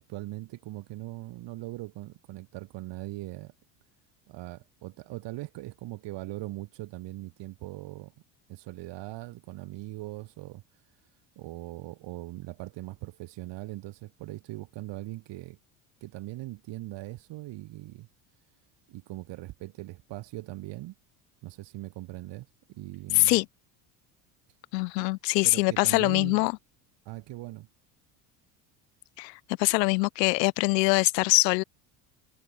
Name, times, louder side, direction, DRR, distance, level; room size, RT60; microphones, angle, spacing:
voice 1, 0.0-3.5 4.3-8.1 8.5-10.6 11.4-15.6 16.0-18.1 18.9-21.0 21.4-23.4 25.0-25.1 25.4-26.5 27.1-27.7, right 18 dB, 60° right, 1.8 m, -40 dB
voice 2, 23.1-23.4 24.7-26.5 29.2-29.3 29.6-31.6, left 25 dB, 85° left, 0.6 m, -23 dB
hypercardioid pair, 80°, 49 cm